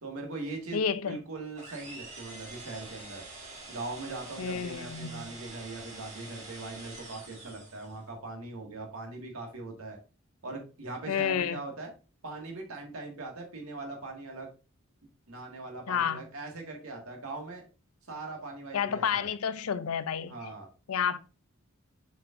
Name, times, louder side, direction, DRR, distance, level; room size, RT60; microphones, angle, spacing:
voice 1, 0.0-3.2 3.7-10.0 10.4-11.9 12.2-14.5 15.3-17.6 18.1-19.3 20.3-20.7, right 3 dB, 75° right, 1.9 m, -41 dB
voice 2, 0.7-1.2 4.4-5.3 11.1-11.6 15.9-16.2 18.7-20.4 20.9-21.2, left 7 dB, 80° left, 0.5 m, -30 dB
sound 1, 1.5-8.1, right 2 dB, 35° right, 3.0 m, -46 dB
7.5 x 5.1 x 2.5 m
head